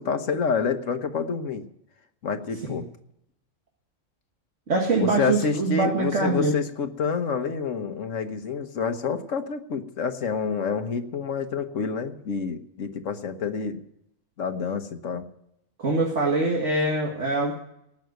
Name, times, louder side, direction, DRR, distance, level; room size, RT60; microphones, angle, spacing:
voice 1, 0.0-1.7 2.2-2.8 5.0-13.8 14.4-15.2, left 5 dB, 75° left, 8 dB, 1.5 m, -28 dB
voice 2, 4.7-6.5 15.8-17.6, right 3 dB, 65° right, -1 dB, 2.1 m, -24 dB
18.0 x 6.5 x 9.2 m, 0.77 s
omnidirectional pair, 1.3 m